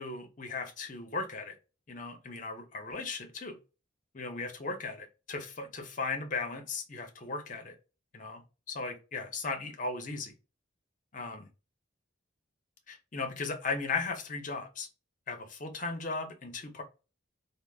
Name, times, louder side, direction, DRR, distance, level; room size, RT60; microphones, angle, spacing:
voice 1, 0.0-1.5 1.9-3.6 4.1-7.7 8.1-8.4 8.7-10.3 11.1-11.5 12.9-14.9 15.3-16.8, left 4 dB, 40° left, 0.6 m, -37 dB
3.3 x 2.0 x 2.3 m
head